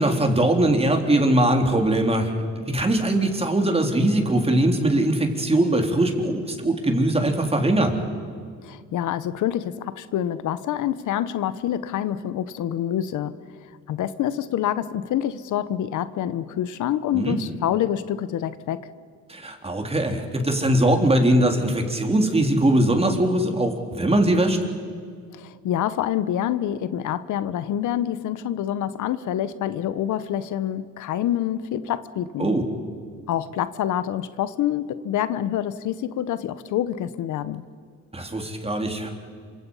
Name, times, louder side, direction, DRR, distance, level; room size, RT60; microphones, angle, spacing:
voice 1, 0.0-2.3 2.7-8.0 17.1-17.4 19.3-24.6 32.4-32.6 38.1-39.1, right 1 dB, 20° right, 3 dB, 3.7 m, -21 dB
voice 2, 8.6-13.3 13.9-18.8 25.3-32.5 33.3-37.6, left 11 dB, 75° left, 14 dB, 1.0 m, -26 dB
27.5 x 25.0 x 5.6 m, 2.1 s
cardioid pair, 90°, 30 cm